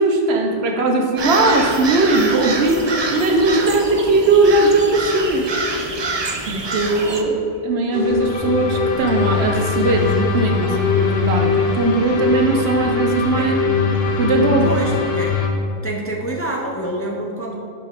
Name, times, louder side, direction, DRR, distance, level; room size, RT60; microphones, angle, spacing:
voice 1, 0.0-2.8 3.1-5.5 6.5-7.3 7.6-13.6 14.1-14.7, right 2 dB, 75° right, 3 dB, 1.0 m, -18 dB
sound 1, 1.2-7.2, right 3 dB, 40° right, 0.4 m, -26 dB
sound 2, 7.9-15.5, left 5 dB, 75° left, 1.0 m, -21 dB
voice 2, 14.6-15.4 15.8-17.6, right 1 dB, 20° left, -1 dB, 0.4 m, -27 dB
5.7 x 5.3 x 4.9 m, 2.5 s
omnidirectional pair, 1.1 m